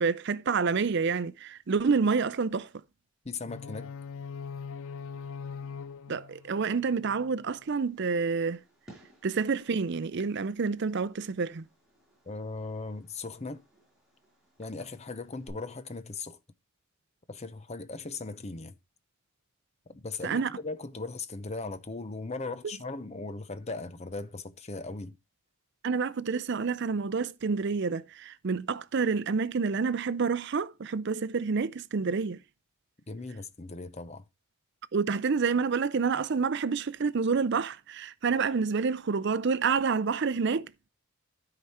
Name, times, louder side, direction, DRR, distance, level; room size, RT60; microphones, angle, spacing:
voice 1, 0.0-2.7 6.1-8.6 9.2-11.6 20.2-20.5 22.6-22.8 25.8-32.4 34.9-40.9, right 5 dB, 50° right, 0.5 m, -28 dB
voice 2, 3.2-3.9 12.3-13.6 14.6-16.4 17.3-18.7 19.9-25.1 33.1-34.2, left 3 dB, 30° left, 0.7 m, -38 dB
sound 1, 3.4-7.5, left 6 dB, 65° left, 0.4 m, -41 dB
Fireworks, 7.5-15.5, right 1 dB, ahead, 5.5 m, -60 dB
12.5 x 4.9 x 4.2 m
head